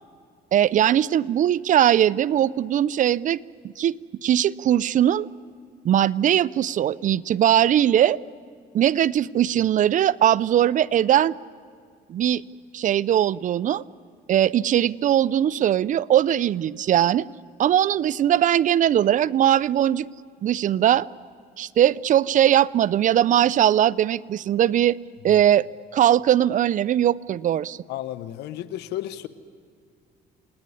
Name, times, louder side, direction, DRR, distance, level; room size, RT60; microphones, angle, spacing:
voice 1, 0.5-3.4 3.8-3.9 4.2-5.3 5.8-8.2 8.7-11.4 12.1-12.4 12.7-13.8 14.3-17.3 17.6-20.1 20.4-21.1 21.6-25.0 25.2-25.7 25.9-27.8, right 11 dB, 50° right, 20 dB, 0.6 m, -20 dB
voice 2, 27.9-29.3, left 13 dB, 80° left, 13 dB, 1.2 m, -33 dB
29.0 x 19.0 x 9.8 m, 2.2 s
cardioid pair, 110°, 17 cm